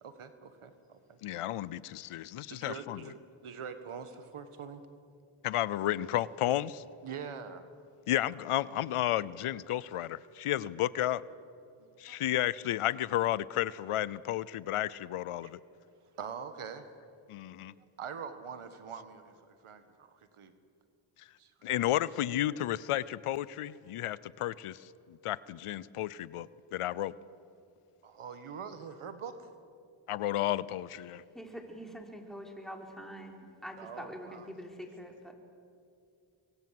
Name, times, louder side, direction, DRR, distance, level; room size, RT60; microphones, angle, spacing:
voice 1, 0.0-1.2 2.5-3.1 3.4-4.8 7.0-7.7 11.8-12.2 15.4-15.5 16.2-16.9 18.0-20.5 21.4-21.9 28.0-29.5 33.8-34.5, right 6 dB, 80° right, 10 dB, 1.8 m, -44 dB
voice 2, 1.2-3.0 5.4-6.8 8.1-11.2 12.0-15.6 17.3-17.7 21.6-27.1 30.1-31.2, left 13 dB, 90° left, 20 dB, 0.7 m, -32 dB
voice 3, 31.3-33.3 33.6-34.7 35.0-35.3, equal, ahead, 2 dB, 4.8 m, -44 dB
25.5 x 23.0 x 7.8 m, 2.5 s
cardioid pair, 50°, 50 cm